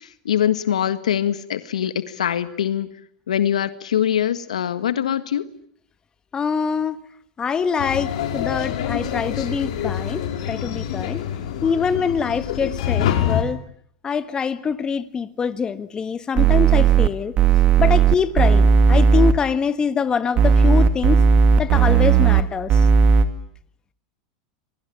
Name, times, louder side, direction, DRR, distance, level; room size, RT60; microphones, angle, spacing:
voice 1, 0.0-2.9 3.3-5.5, left 10 dB, 90° left, 1.7 m, -23 dB
voice 2, 6.3-7.0 7.4-11.2 11.6-13.6 14.0-17.4 17.8-21.2 21.6-22.8, left 6 dB, 25° left, 1.5 m, -24 dB
sound 1, 7.8-13.4, left 10 dB, 70° left, 5.4 m, -26 dB
sound 2, 16.4-17.1 17.4-19.3 20.4-22.4 22.7-23.2, right 6 dB, 35° right, 2.4 m, -15 dB
27.0 x 22.5 x 8.6 m
hypercardioid pair, 110°, 4 cm